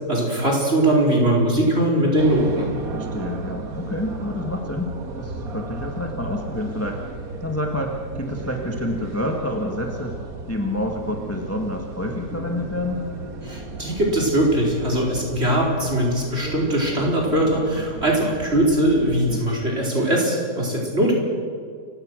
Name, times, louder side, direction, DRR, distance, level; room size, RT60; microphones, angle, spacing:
voice 1, 0.1-2.7 13.4-21.1, right 1 dB, 35° right, -2 dB, 4.9 m, -21 dB
sound 1, 2.2-19.4, right 3 dB, 55° right, 2.0 m, -35 dB
voice 2, 2.9-7.0 7.4-10.2 10.5-13.0, left 1 dB, 10° left, 1 dB, 1.6 m, -28 dB
29.0 x 16.5 x 6.4 m, 2.1 s
omnidirectional pair, 1.9 m